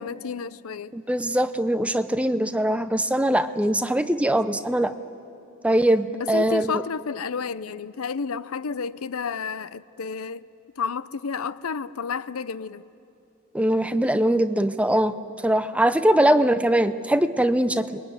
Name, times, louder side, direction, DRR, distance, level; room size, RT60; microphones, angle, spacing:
voice 1, 0.0-1.0 1.7-2.0 6.1-10.5 10.8-12.8 16.1-16.4, left 5 dB, 70° left, 17 dB, 0.6 m, -31 dB
voice 2, 0.9-4.9 5.6-6.7 13.5-15.2 15.4-18.0, right 1 dB, 5° right, 11 dB, 0.6 m, -22 dB
28.5 x 22.0 x 9.3 m, 2.6 s
head